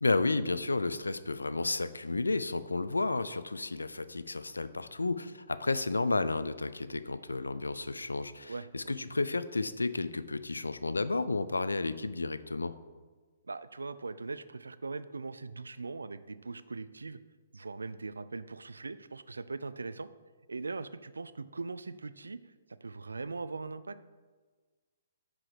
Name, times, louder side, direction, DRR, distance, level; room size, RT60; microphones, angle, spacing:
voice 1, 0.0-12.7, left 3 dB, 90° left, 14 dB, 0.3 m, -32 dB
voice 2, 8.5-9.1 13.4-17.2 17.5-20.1 20.5-22.4 22.8-24.0, right 3 dB, 85° right, 15 dB, 0.3 m, -40 dB
5.9 x 4.8 x 4.8 m, 1.4 s
figure-of-eight pair, 130°, 0 cm